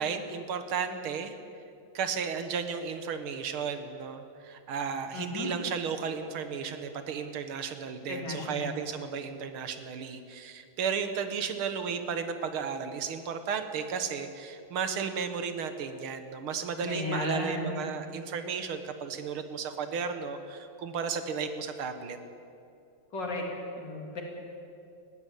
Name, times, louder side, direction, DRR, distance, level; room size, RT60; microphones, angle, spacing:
voice 1, 0.0-1.4 1.9-22.2, right 6 dB, 85° right, 9 dB, 2.1 m, -34 dB
voice 2, 5.1-5.5 8.1-8.8 16.8-17.8 23.1-23.5 23.8-24.2, left 3 dB, 55° left, 0 dB, 4.0 m, -34 dB
20.0 x 15.0 x 9.1 m, 2.6 s
omnidirectional pair, 2.3 m